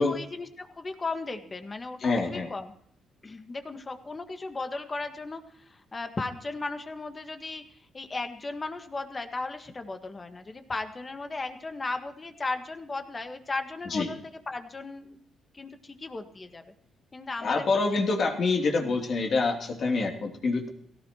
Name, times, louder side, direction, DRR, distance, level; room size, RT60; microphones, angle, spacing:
voice 1, 0.0-2.7 3.2-7.6 7.9-15.2 15.5-16.6 17.1-17.7 18.1-18.2 18.8-19.0, left 3 dB, 30° left, 7 dB, 1.6 m, -36 dB
voice 2, 2.0-2.5 13.9-14.1 17.4-20.7, left 3 dB, 55° left, 1 dB, 3.1 m, -26 dB
17.5 x 15.0 x 3.0 m, 0.69 s
cardioid pair, 90°, 0 cm